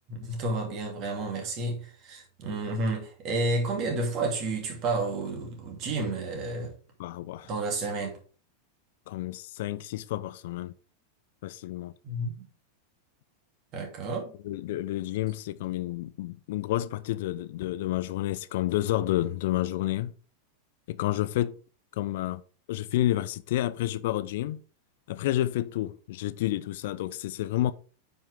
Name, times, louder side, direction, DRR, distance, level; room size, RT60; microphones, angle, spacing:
voice 1, 0.1-6.7 7.4-8.2 12.0-12.5 13.7-14.3, right 2 dB, 40° right, 2.7 m, -31 dB
voice 2, 7.0-7.5 9.1-10.7 11.4-11.9 14.4-20.1 20.9-21.5 21.9-22.4 22.7-24.6 25.1-27.7, left 14 dB, 55° left, 0.4 m, -30 dB
9.0 x 5.6 x 3.5 m
figure-of-eight pair, 90°, 0 cm